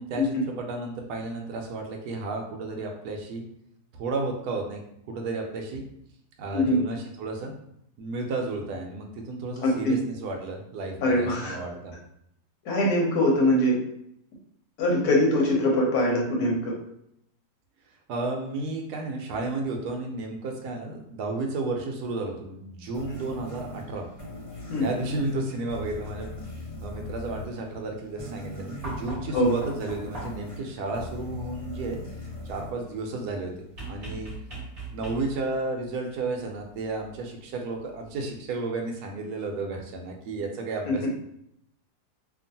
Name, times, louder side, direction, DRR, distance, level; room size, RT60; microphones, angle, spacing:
voice 1, 0.0-3.4 4.0-5.8 6.4-7.5 8.0-11.9 18.1-24.0 24.8-26.4 26.8-32.0 32.4-33.5 33.9-34.3 34.9-41.1, right 3 dB, 70° right, 2 dB, 1.1 m, -32 dB
voice 2, 9.6-10.0 11.0-11.5 12.6-13.7 14.8-16.7 24.7-24.8 29.3-29.5 40.8-41.1, left 1 dB, 65° left, -2 dB, 1.2 m, -22 dB
sound 1, 22.9-33.7, left 1 dB, 20° left, 1.0 m, -41 dB
sound 2, 28.8-30.6 33.8-35.5 37.0-37.1, right 2 dB, 30° right, 0.7 m, -39 dB
2.9 x 2.4 x 2.6 m, 0.75 s
omnidirectional pair, 1.8 m